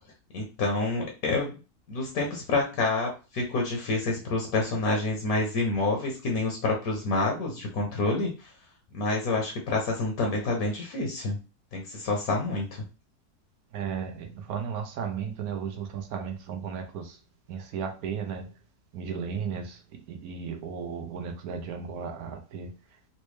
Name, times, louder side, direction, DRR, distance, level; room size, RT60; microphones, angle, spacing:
voice 1, 0.3-1.6 1.9-8.5 8.9-11.4 11.7-12.8, left 3 dB, 70° left, 1.3 m, -28 dB
voice 2, 13.7-17.2 17.5-18.6 18.9-23.0, right 6 dB, 80° right, 1.1 m, -35 dB
4.1 x 2.1 x 3.1 m
omnidirectional pair, 1.6 m